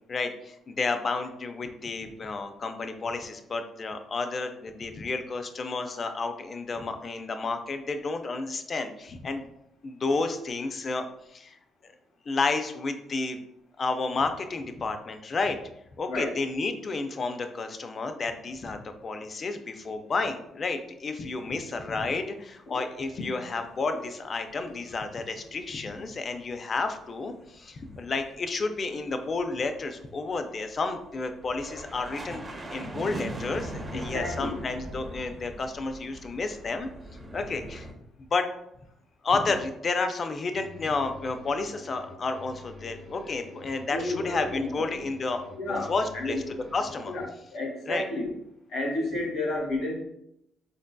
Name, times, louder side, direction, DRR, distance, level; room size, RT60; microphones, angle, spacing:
voice 1, 0.1-9.5 9.8-11.6 12.3-13.4 13.8-15.6 16.0-32.4 32.7-36.9 37.3-37.9 38.2-38.5 39.2-46.4 46.7-47.1 47.9-48.0, left 3 dB, 45° left, 7 dB, 0.4 m, -31 dB
sound 1, 23.8-24.7 25.0-25.9 26.2-37.9, right 1 dB, 25° right, 0.5 m, -41 dB
voice 2, 33.9-34.6 43.9-44.9 45.6-46.4 47.1-48.3 48.7-50.0, left 2 dB, 75° left, 0 dB, 1.0 m, -31 dB
sound 2, 40.5-47.3, left 3 dB, 60° right, 0.8 m, -47 dB
3.8 x 2.6 x 2.2 m, 0.78 s
cardioid pair, 90°, 0 cm